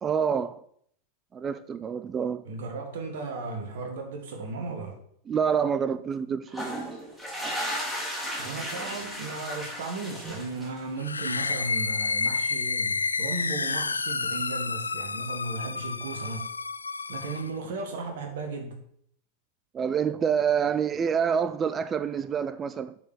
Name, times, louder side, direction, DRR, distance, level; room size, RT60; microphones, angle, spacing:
voice 1, 0.0-0.6 1.3-2.4 5.3-7.0 19.7-23.0, right 7 dB, 20° right, 0.3 m, -27 dB
voice 2, 2.4-5.0 8.4-16.5 17.1-18.8, right 3 dB, 55° right, 1.9 m, -35 dB
sound 1, 6.5-11.0, equal, 5° right, 2.7 m, -35 dB
sound 2, 11.0-17.6, left 4 dB, 75° left, 0.3 m, -30 dB
8.0 x 4.7 x 6.5 m
figure-of-eight pair, 90°, 0 cm